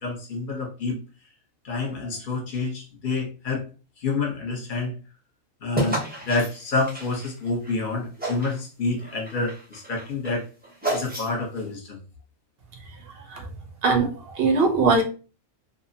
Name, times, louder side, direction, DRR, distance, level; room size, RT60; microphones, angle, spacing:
voice 1, 0.0-1.0 1.6-3.6 4.0-4.9 5.6-10.4 10.9-12.0, left 3 dB, 45° left, -1 dB, 0.8 m, -28 dB
sound 1, 5.7-7.8 8.2-8.6 9.0-11.6, right 1 dB, 15° right, 0.4 m, -31 dB
voice 2, 13.8-15.0, right 3 dB, 60° right, 3 dB, 0.7 m, -21 dB
2.5 x 2.0 x 2.6 m, 0.35 s
omnidirectional pair, 1.4 m